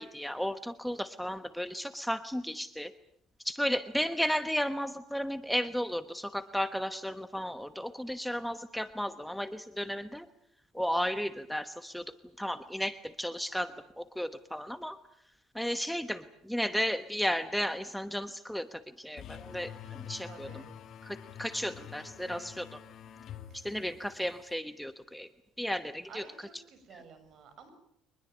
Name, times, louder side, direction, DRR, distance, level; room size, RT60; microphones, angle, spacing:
voice 1, 0.0-2.9 3.4-10.3 10.7-15.0 15.5-19.7 20.1-20.6 21.0-22.8 23.5-25.3 25.6-26.2 26.9-27.0, equal, ahead, 11 dB, 1.1 m, -34 dB
sound 1, 19.2-24.5, left 9 dB, 55° left, 2.1 m, -47 dB
voice 2, 20.3-20.7 21.6-22.5 23.5-23.6 26.1-27.7, right 5 dB, 55° right, 9 dB, 7.0 m, -53 dB
24.0 x 21.0 x 8.6 m, 0.71 s
cardioid pair, 115°, 0 cm